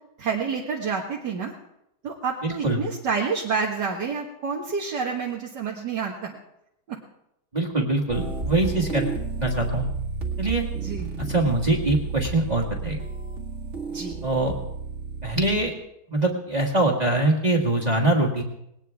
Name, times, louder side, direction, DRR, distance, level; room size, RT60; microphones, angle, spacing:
voice 1, 0.2-1.5 2.0-6.4 6.9-7.0 10.8-11.3 13.9-14.2, right 5 dB, 75° right, -1 dB, 2.0 m, -29 dB
voice 2, 2.4-2.8 7.5-9.9 10.4-10.7 11.2-13.0 14.2-14.6 15.2-15.7 16.1-18.4, right 2 dB, 25° right, -1 dB, 1.8 m, -23 dB
sound 1, 8.1-15.6, right 4 dB, 45° right, 2.0 m, -32 dB
19.5 x 18.5 x 3.5 m, 0.81 s
omnidirectional pair, 1.8 m